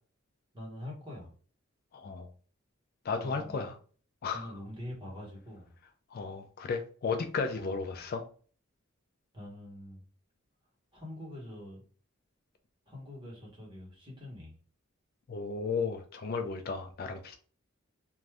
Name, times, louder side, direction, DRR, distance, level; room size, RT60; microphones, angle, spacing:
voice 1, 0.5-1.3 3.2-3.6 4.3-5.7 7.6-7.9 9.3-10.0 10.9-11.8 12.9-14.5, left 1 dB, 25° right, -3 dB, 1.3 m, -44 dB
voice 2, 1.9-2.3 3.0-3.7 4.2-4.5 6.1-8.2 15.3-17.4, left 4 dB, 50° left, 6 dB, 0.4 m, -34 dB
2.6 x 2.4 x 3.2 m, 0.42 s
head